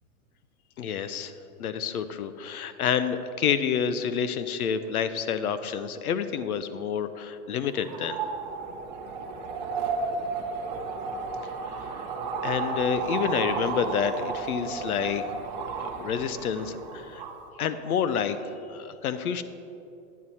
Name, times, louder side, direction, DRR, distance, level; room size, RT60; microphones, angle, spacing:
voice 1, 0.8-1.3 1.6-8.2 11.6-12.0 12.4-15.2 15.7-17.2 17.6-19.4, left 7 dB, 75° left, 11 dB, 0.7 m, -29 dB
sound 1, 7.7-17.4, right 4 dB, 30° right, 0.8 m, -33 dB
9.5 x 9.3 x 4.2 m, 2.7 s
supercardioid pair, 180°, 44 cm